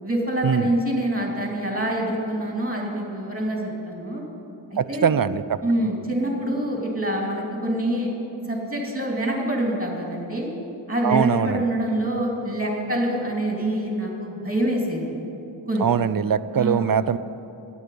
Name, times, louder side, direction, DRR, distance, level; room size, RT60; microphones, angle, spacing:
voice 1, 0.0-4.2 4.7-5.1 5.6-8.1 8.5-10.5 10.9-15.1 15.7-15.9 16.5-16.8, right 1 dB, 20° right, -1 dB, 2.7 m, -26 dB
voice 2, 4.8-5.6 11.0-11.6 15.8-17.2, right 8 dB, 50° right, 15 dB, 0.5 m, -22 dB
9.7 x 8.4 x 9.2 m, 3.0 s
wide cardioid pair, 45°, 46 cm